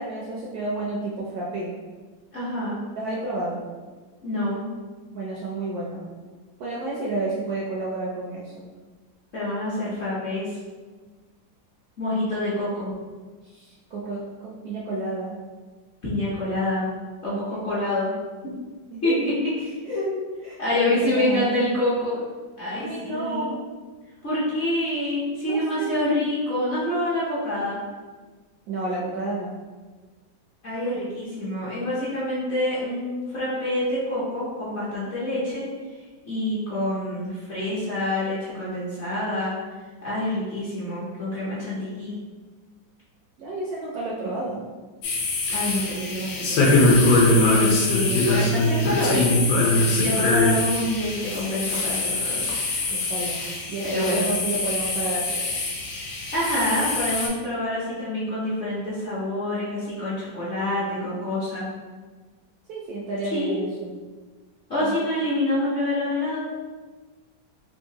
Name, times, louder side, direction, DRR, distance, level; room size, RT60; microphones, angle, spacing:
voice 1, 0.0-1.7 2.9-3.6 5.1-6.0 6.6-8.7 13.5-15.4 17.3-17.4 18.9-19.1 19.8-20.0 20.4-21.6 22.7-23.6 25.5-26.0 28.7-29.5 43.4-44.6 52.9-53.4 53.7-55.6 62.7-63.9 64.8-65.0, right 2 dB, 70° right, -4 dB, 0.9 m, -31 dB
voice 2, 2.3-2.8 4.2-4.6 9.3-10.6 12.0-12.9 16.0-16.8 17.2-18.1 19.0-20.1 20.6-22.2 22.6-23.5 24.2-27.8 30.6-35.7 36.2-39.6 40.0-42.2 45.5-46.9 47.5-49.4 50.0-52.6 53.8-54.3 56.3-61.6 63.3-63.6 64.7-66.4, left 1 dB, 50° left, -10 dB, 0.9 m, -27 dB
sound 1, 45.0-57.3, left 2 dB, 90° left, 1.4 m, -22 dB
3.6 x 2.5 x 2.8 m, 1.3 s
omnidirectional pair, 2.0 m